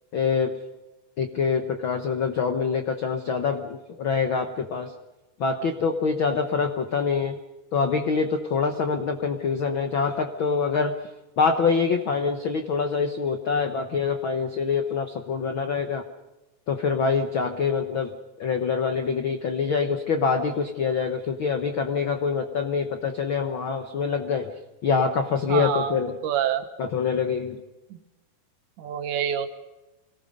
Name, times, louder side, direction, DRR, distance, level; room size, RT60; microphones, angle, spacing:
voice 1, 0.1-0.6 1.2-4.9 5.4-7.4 7.7-10.9 11.4-16.0 16.7-24.5 24.8-26.2 26.8-27.6, left 5 dB, 75° left, 6 dB, 1.1 m, -25 dB
voice 2, 25.5-26.6 27.9-28.0 28.8-29.6, right 9 dB, 70° right, 8 dB, 2.7 m, -27 dB
26.5 x 18.5 x 5.3 m, 1.1 s
omnidirectional pair, 3.9 m